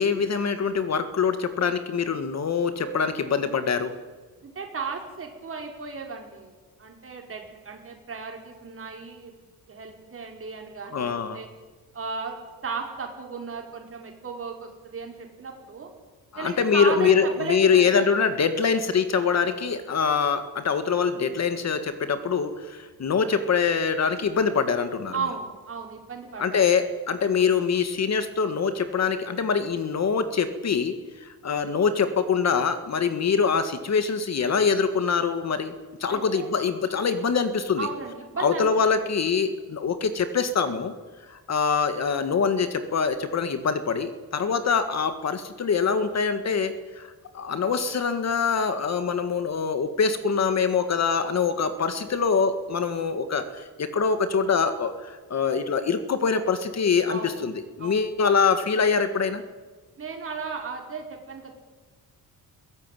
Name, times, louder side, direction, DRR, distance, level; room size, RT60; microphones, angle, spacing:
voice 1, 0.0-3.9 10.9-11.4 16.3-25.1 26.4-30.9 31.2-35.7 36.0-37.9 38.4-40.9 41.3-47.1 47.3-57.5 57.8-59.4, left 6 dB, 45° left, 10 dB, 1.8 m, -24 dB
voice 2, 4.4-9.3 9.7-11.5 11.9-15.9 16.3-18.1 25.1-26.7 36.1-36.5 37.8-38.7 57.1-57.4 57.8-58.1 60.0-61.5, right 5 dB, 35° right, 2 dB, 4.9 m, -35 dB
22.5 x 17.5 x 9.2 m, 1.4 s
wide cardioid pair, 165°, 36 cm